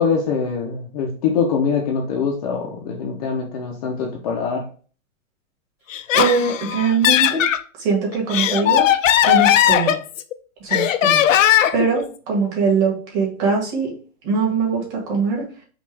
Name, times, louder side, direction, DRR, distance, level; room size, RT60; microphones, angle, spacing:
voice 1, 0.0-4.7, left 6 dB, 30° left, 0 dB, 0.6 m, -23 dB
Laughter, 5.9-7.6 8.1-10.3 10.7-11.9, left 11 dB, 75° left, 0.6 m, -17 dB
voice 2, 6.1-7.4 7.8-8.9 9.2-9.9 10.6-13.9 14.2-15.5, right 4 dB, 30° right, -1 dB, 1.7 m, -22 dB
5.3 x 2.4 x 3.3 m, 0.40 s
hypercardioid pair, 160°, 39 cm